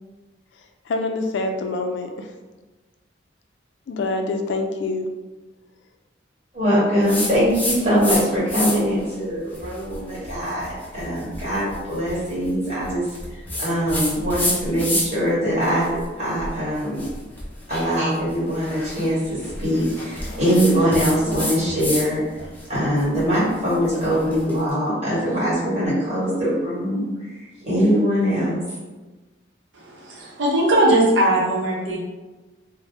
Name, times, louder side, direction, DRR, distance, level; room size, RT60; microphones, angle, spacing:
voice 1, 0.9-2.3 3.9-5.1, left 2 dB, 70° left, 5 dB, 0.4 m, -25 dB
voice 2, 6.5-13.0 13.3-17.0 17.7-22.2 22.7-27.1 27.4-28.6, equal, 35° right, -9 dB, 1.5 m, -22 dB
sound 1, 7.1-8.2 8.5-9.0 9.5-15.3 15.6-22.1 22.4-24.6, left 1 dB, 10° left, 0.5 m, -29 dB
voice 3, 29.7-32.0, right 1 dB, 75° right, -3 dB, 0.7 m, -19 dB
2.7 x 2.0 x 3.3 m, 1.2 s
head